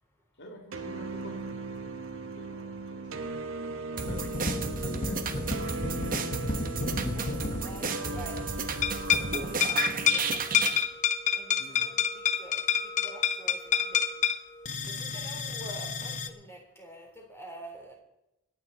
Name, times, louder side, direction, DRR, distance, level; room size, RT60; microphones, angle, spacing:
voice 1, 0.4-5.5 11.6-11.9, left 1 dB, 55° left, 1 dB, 2.4 m, -48 dB
sound 1, 0.7-10.3, right 3 dB, 65° right, 1.2 m, -39 dB
sound 2, 4.0-10.8, right 5 dB, 40° right, 1.3 m, -34 dB
sound 3, 4.1-8.5 8.8-16.3, left 6 dB, 35° left, 0.9 m, -30 dB
voice 2, 7.2-14.1 14.9-17.9, right 1 dB, 10° left, 0 dB, 3.8 m, -48 dB
26.5 x 9.5 x 4.2 m, 0.89 s
head